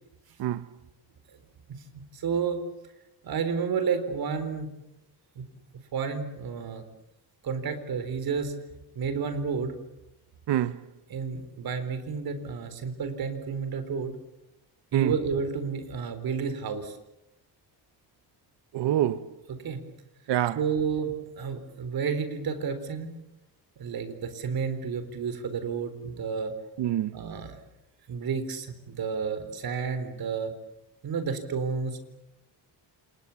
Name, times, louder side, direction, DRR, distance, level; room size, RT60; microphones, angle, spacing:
voice 1, 2.1-2.6 3.2-4.7 5.4-5.5 5.9-6.8 7.4-8.5 9.0-9.7 11.1-14.2 14.9-17.0 19.6-19.8 20.5-23.1 23.8-26.5 27.1-27.6 28.1-30.5 31.0-32.0, right 6 dB, 55° right, 4.1 m, -31 dB
voice 2, 10.5-10.8 14.9-15.1 18.7-19.2 20.3-20.6 26.8-27.1, right 12 dB, 75° right, 1.1 m, -25 dB
29.0 x 28.0 x 7.2 m
cardioid pair, 160°, 42 cm